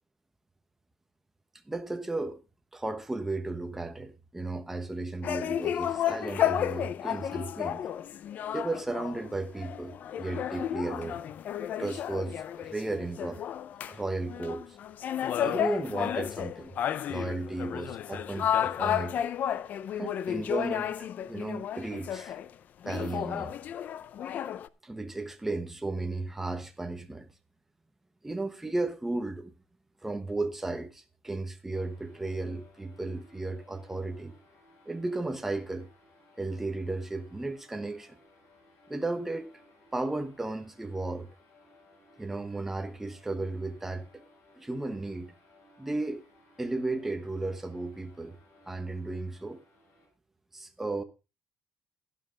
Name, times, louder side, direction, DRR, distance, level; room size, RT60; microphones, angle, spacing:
voice 1, 1.7-2.4 2.7-7.8 8.5-11.2 11.8-13.4 13.9-14.8 15.4-16.8 17.1-19.3 20.0-20.9 21.3-22.4 22.8-23.5 24.8-27.3 28.2-29.5 30.0-34.3 34.9-35.9 36.4-38.2 38.9-39.5 39.9-41.3 42.2-44.2 44.6-45.3 45.8-46.2 46.6-48.3 48.7-49.6 50.5-51.0, right 2 dB, 5° right, 1.1 m, -34 dB
sound 1, 5.2-14.0 14.3-22.5 22.8-24.7, left 10 dB, 45° left, 0.5 m, -32 dB
sound 2, 31.7-50.1, left 1 dB, 80° left, 6.5 m, -61 dB
12.0 x 11.5 x 3.8 m
cardioid pair, 175°, 4 cm